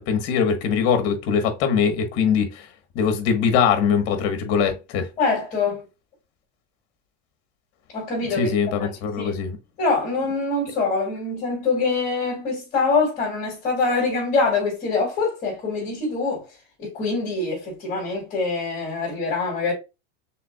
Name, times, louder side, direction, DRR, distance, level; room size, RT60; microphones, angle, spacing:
voice 1, 0.0-2.7 2.9-5.1 8.4-9.6, left 6 dB, 50° left, 1.3 m, -22 dB
voice 2, 5.2-5.8 7.9-8.5 8.8-8.9 9.2-9.3 9.8-16.5 16.8-19.7, left 4 dB, 25° left, 2.7 m, -24 dB
5.7 x 3.6 x 2.3 m
supercardioid pair, 160°, 31 cm